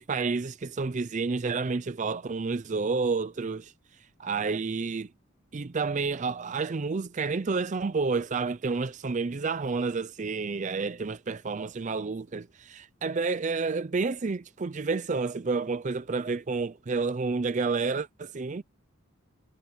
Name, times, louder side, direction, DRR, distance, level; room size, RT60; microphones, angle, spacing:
voice 1, 0.0-5.1 5.5-18.6, right 4 dB, 35° right, 0.5 m, -30 dB
head